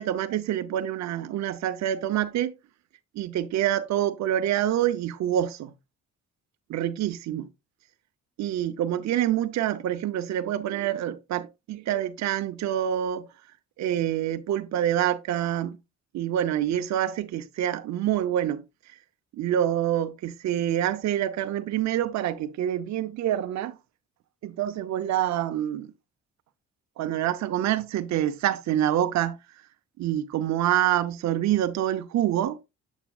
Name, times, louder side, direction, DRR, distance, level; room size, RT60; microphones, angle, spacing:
voice 1, 0.0-2.5 3.1-5.7 6.7-7.5 8.4-13.3 13.8-15.8 16.1-19.0 19.3-23.8 24.4-25.9 27.0-29.4 30.0-32.6, right 11 dB, 65° right, 0.6 m, -26 dB
8.1 x 6.9 x 2.3 m
cardioid pair, 90°, 30 cm